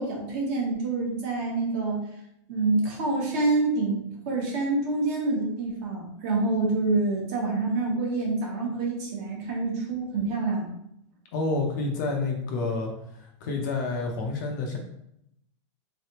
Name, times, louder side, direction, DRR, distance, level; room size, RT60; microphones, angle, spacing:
voice 1, 0.0-2.0 2.5-10.7, right 3 dB, 30° right, -2 dB, 1.1 m, -27 dB
voice 2, 11.3-12.9 13.2-14.8, left 3 dB, 40° left, 1 dB, 0.6 m, -29 dB
3.9 x 3.2 x 2.9 m, 0.78 s
supercardioid pair, 175°, 16 cm